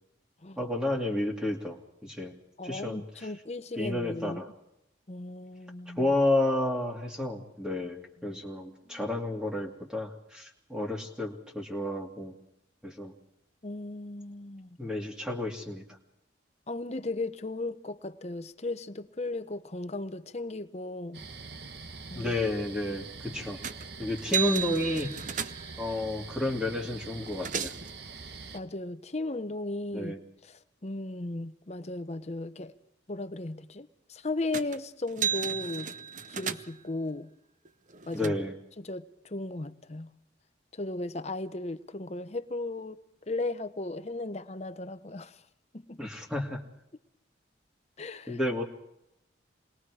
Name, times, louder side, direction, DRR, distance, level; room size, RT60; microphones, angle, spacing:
voice 1, 0.6-2.4 2.6-3.3 3.8-4.5 6.0-12.4 12.8-13.1 14.8-15.8 22.2-23.6 24.0-25.1 25.8-27.7 29.9-30.2 38.1-38.5 46.0-46.6 48.3-48.6, left 1 dB, 5° right, 2.4 m, -31 dB
voice 2, 2.6-4.4 5.1-6.1 8.2-8.4 8.9-9.1 13.6-14.8 16.7-21.2 22.1-22.3 28.5-30.1 30.5-32.7 33.1-35.9 36.3-37.3 38.1-38.4 38.8-40.1 40.7-43.0 43.3-45.3 45.7-46.0 48.0-48.4, left 2 dB, 35° left, 0.9 m, -36 dB
sound 1, 21.1-28.6, right 4 dB, 60° right, 1.3 m, -44 dB
sound 2, 23.6-23.9 24.2-25.8 26.8-26.9 27.2-27.9 34.5-34.8 35.1-36.9 37.7-38.3, right 7 dB, 40° right, 0.8 m, -34 dB
28.0 x 21.0 x 4.9 m
head